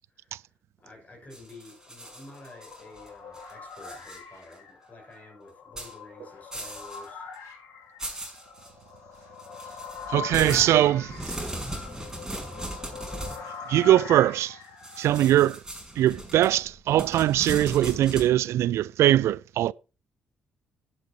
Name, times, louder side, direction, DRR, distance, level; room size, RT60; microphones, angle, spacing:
voice 1, 0.1-0.5 0.8-7.3, left 2 dB, 30° left, 6.8 m, -49 dB
sound 1, 1.3-3.1 3.3-4.2 4.5-4.6 5.8-5.9 6.5-7.1 7.3-7.4 8.0-8.7 9.4-13.5 14.8-18.3, right 1 dB, 10° right, 5.8 m, -38 dB
sound 2, 1.8-15.2, left 5 dB, 70° left, 3.0 m, -42 dB
voice 2, 10.1-11.2 13.7-14.6 15.0-15.6 16.0-19.7, right 13 dB, 65° right, 0.4 m, -21 dB
12.0 x 11.0 x 3.1 m
hypercardioid pair, 45°, 5 cm